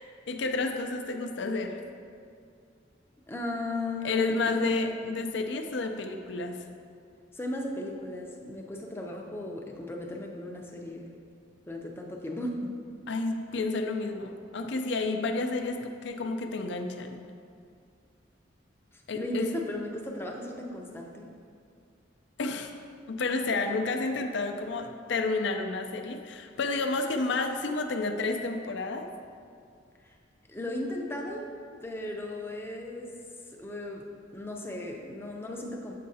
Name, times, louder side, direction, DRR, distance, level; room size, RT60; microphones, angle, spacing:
voice 1, 0.3-1.8 4.0-6.6 13.1-17.2 19.1-19.5 22.4-22.7 23.1-29.1, left 3 dB, 65° left, 5 dB, 0.5 m, -30 dB
voice 2, 3.3-4.8 7.3-11.1 11.7-12.7 19.1-21.3 30.0-30.1 30.5-31.6 31.8-33.1 33.5-34.1 34.3-35.9, left 1 dB, 10° left, 1 dB, 0.5 m, -36 dB
7.5 x 5.5 x 2.7 m, 2.3 s
head